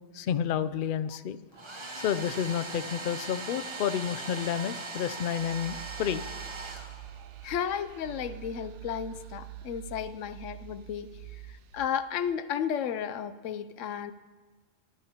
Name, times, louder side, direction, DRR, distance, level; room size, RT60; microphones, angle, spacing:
voice 1, 0.1-1.4 2.0-6.2, left 9 dB, 60° left, 13 dB, 0.5 m, -30 dB
Domestic sounds home sounds, 1.5-7.4, right 3 dB, 25° right, 0.8 m, -40 dB
sound 1, 5.4-11.9, right 13 dB, 70° right, 0.9 m, -45 dB
voice 2, 7.4-11.1 11.7-14.1, left 8 dB, 80° left, 13 dB, 0.9 m, -33 dB
19.5 x 12.0 x 2.9 m, 1.3 s
omnidirectional pair, 1.3 m